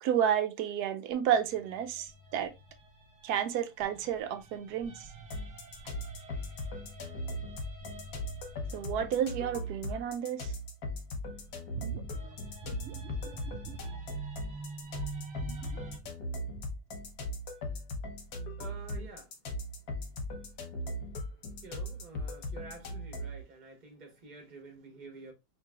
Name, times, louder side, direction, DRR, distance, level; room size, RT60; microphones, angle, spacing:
voice 1, 0.0-2.5 3.2-5.1 8.7-10.5, right 9 dB, 75° right, 1.0 m, -31 dB
sound 1, 1.1-10.3 11.1-16.0, right 2 dB, 45° right, 1.3 m, -48 dB
sound 2, 5.3-23.4, left 1 dB, 65° left, 1.2 m, -39 dB
sound 3, 11.7-14.8 15.2-16.9 17.4-17.5, right 4 dB, 90° right, 0.6 m, -44 dB
voice 2, 18.6-19.3 21.6-25.3, right 3 dB, 30° right, 1.2 m, -49 dB
5.0 x 3.1 x 2.3 m
omnidirectional pair, 1.8 m